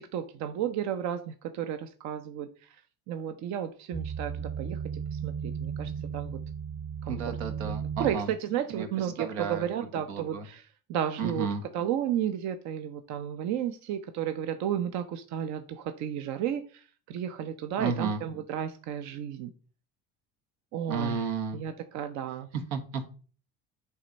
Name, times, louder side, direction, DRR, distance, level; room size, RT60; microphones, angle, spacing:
voice 1, 0.1-2.8 3.1-6.4 7.0-7.4 8.0-19.5 20.7-21.3 21.5-22.5, right 9 dB, 60° right, 8 dB, 0.7 m, -33 dB
sound 1, 3.9-8.2, right 7 dB, 10° right, 0.4 m, -35 dB
voice 2, 7.1-8.3 8.7-8.9 9.2-9.6 10.1-10.4 11.2-11.6 17.8-18.2 20.9-21.6 22.5-23.1, right 5 dB, 90° right, 6 dB, 1.5 m, -32 dB
8.5 x 3.4 x 5.2 m, 0.40 s
supercardioid pair, 100°, 32 cm